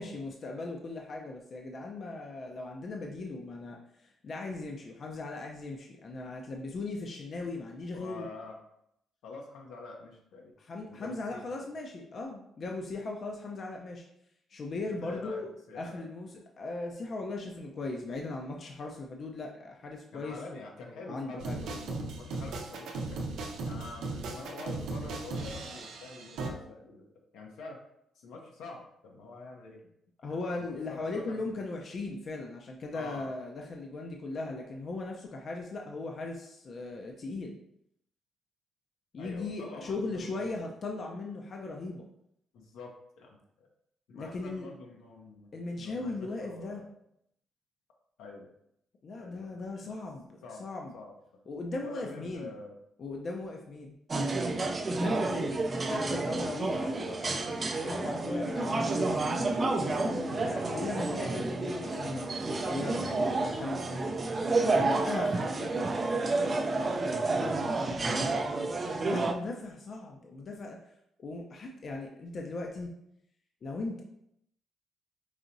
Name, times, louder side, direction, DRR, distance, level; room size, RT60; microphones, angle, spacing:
voice 1, 0.0-8.3 10.6-14.0 14.5-15.5 15.7-20.4 20.9-21.6 30.2-37.6 39.1-42.0 44.1-44.7 45.5-46.8 49.0-50.9 51.5-52.5 53.0-53.9 55.0-56.9 57.8-62.4 62.6-64.0 64.8-65.3 68.0-68.5 68.7-70.8 71.2-72.9 73.6-74.0, left 3 dB, 50° left, 1 dB, 0.5 m, -38 dB
voice 2, 7.9-8.6 9.2-10.5 10.9-11.4 15.0-15.4 15.7-16.0 20.1-23.3 23.6-27.8 28.2-29.8 30.3-31.7 32.9-33.3 39.2-40.7 42.5-43.7 44.1-45.5 45.8-46.9 48.2-48.5 49.2-49.9 50.4-50.6 50.9-51.2 51.8-52.7 56.8-57.4 58.0-59.4 63.0-63.1 65.3-67.8, left 3 dB, 85° left, 0 dB, 0.8 m, -46 dB
sound 1, 21.4-26.5, right 3 dB, 80° right, 0.6 m, -37 dB
sound 2, 54.1-69.3, right 3 dB, 35° right, 0.4 m, -30 dB
4.8 x 2.8 x 2.6 m, 0.76 s
cardioid pair, 90°, 0 cm